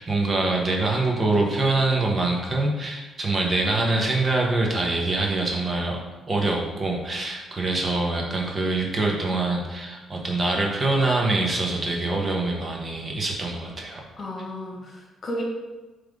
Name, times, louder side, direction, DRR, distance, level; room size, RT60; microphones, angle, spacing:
voice 1, 0.0-6.0 6.3-14.0, right 2 dB, 30° right, 0 dB, 1.2 m, -24 dB
voice 2, 14.2-15.4, equal, 45° left, -1 dB, 1.5 m, -33 dB
7.3 x 3.5 x 3.7 m, 1.2 s
cardioid pair, 90°, 0 cm